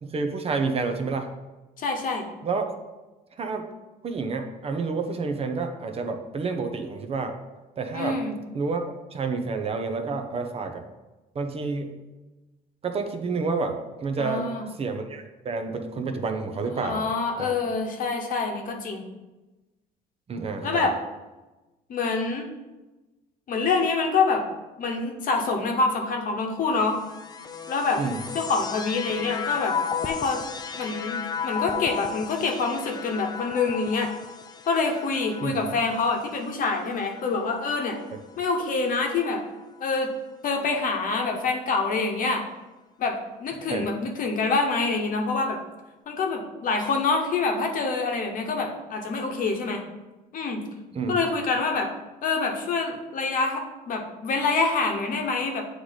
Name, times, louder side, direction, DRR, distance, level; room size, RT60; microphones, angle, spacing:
voice 1, 0.0-1.3 2.4-2.7 3.4-3.6 4.0-7.3 7.8-8.2 8.5-8.8 9.1-10.8 11.3-11.9 12.8-14.5 14.8-17.1 17.4-17.6 20.3-20.9 28.0-28.2 35.4-35.7 43.7-43.9 50.9-51.2, right 4 dB, 35° right, 5 dB, 0.7 m, -29 dB
voice 2, 1.8-2.3 7.9-8.3 14.2-14.7 16.8-19.0 20.6-20.9 21.9-22.5 23.5-24.4 24.8-27.0 27.7-28.0 28.3-29.8 30.0-30.4 30.7-34.1 34.7-38.0 38.4-39.4 39.8-40.1 40.4-42.4 43.0-45.6 46.1-49.8 50.3-50.6 51.1-51.9 52.2-55.6, left 4 dB, 55° left, 3 dB, 1.0 m, -26 dB
sound 1, 26.8-38.3 39.1-39.8, left 6 dB, 25° left, 0.4 m, -35 dB
8.0 x 3.2 x 4.0 m, 1.1 s
cardioid pair, 110°, 17 cm